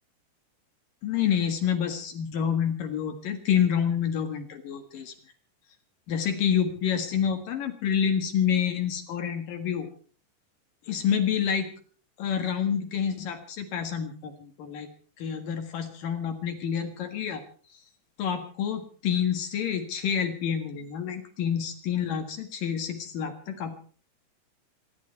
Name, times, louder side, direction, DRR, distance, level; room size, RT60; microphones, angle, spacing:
voice 1, 1.0-5.1 6.1-9.9 10.9-11.7 12.2-14.9 15.2-17.4 18.2-23.8, left 8 dB, 60° left, 6 dB, 2.9 m, -28 dB
27.0 x 11.5 x 4.6 m, 0.42 s
omnidirectional pair, 5.1 m